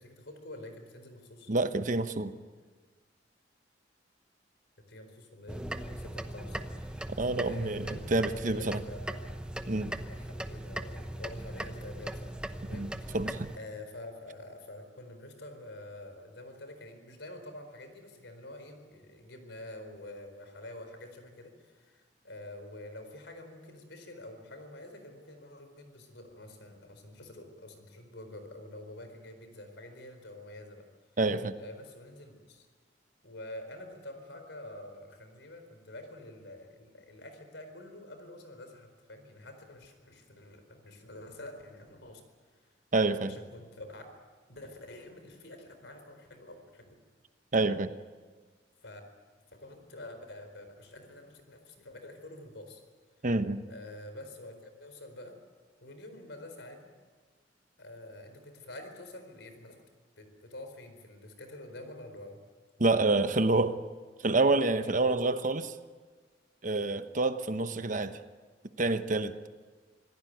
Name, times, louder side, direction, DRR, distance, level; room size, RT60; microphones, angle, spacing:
voice 1, 0.0-1.5 4.9-7.1 7.4-9.3 10.1-12.4 12.6-13.2 13.5-30.9 31.6-32.7 33.2-42.2 43.3-44.1 44.5-46.9 48.8-49.0 49.5-52.8 53.2-53.3 53.7-55.4 55.8-56.9 57.8-59.8 60.2-62.4 67.7-67.9, left 1 dB, 75° left, 7 dB, 4.4 m, -47 dB
voice 2, 1.5-2.3 7.2-8.8 9.7-9.9 12.7-13.5 31.2-31.6 42.9-43.3 47.5-47.9 53.2-53.6 62.8-63.8 64.2-65.7 66.6-68.2 68.8-69.4, right 2 dB, 45° right, 10 dB, 1.0 m, -28 dB
sound 1, 5.5-13.6, right 1 dB, 5° right, 0.9 m, -39 dB
25.5 x 17.0 x 9.3 m, 1.5 s
head